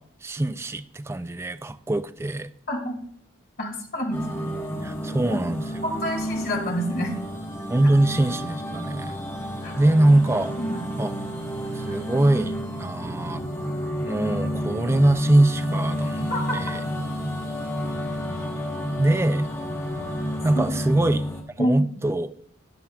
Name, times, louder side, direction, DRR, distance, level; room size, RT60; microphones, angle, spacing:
voice 1, 0.0-2.5 4.8-5.8 7.7-9.2 9.8-10.5 11.0-11.2 11.7-13.4 14.0-16.9 19.0-19.5 20.4-21.3 21.6-22.3, right 1 dB, 10° right, 0.3 m, -23 dB
voice 2, 3.6-4.2 5.3-5.4 5.8-7.1 9.6-9.7 10.6-10.8 16.3-16.4 20.5-20.7 21.6-21.7, equal, 45° left, 2.3 m, -27 dB
sound 1, 4.1-21.4, equal, 10° left, 1.2 m, -30 dB
13.0 x 9.9 x 2.3 m
head